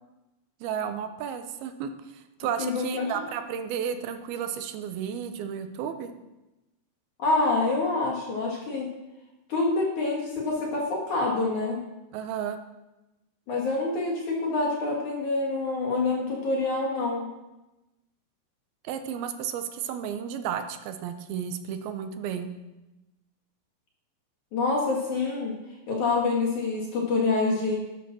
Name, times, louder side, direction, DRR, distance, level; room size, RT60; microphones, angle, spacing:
voice 1, 0.6-6.1 12.1-12.6 18.8-22.5, right 8 dB, 80° right, 8 dB, 2.2 m, -33 dB
voice 2, 2.6-3.1 7.2-8.9 9.5-11.8 13.5-17.3 24.5-25.5 25.9-27.8, left 3 dB, 50° left, -1 dB, 2.9 m, -26 dB
11.5 x 11.0 x 6.2 m, 1.0 s
omnidirectional pair, 5.6 m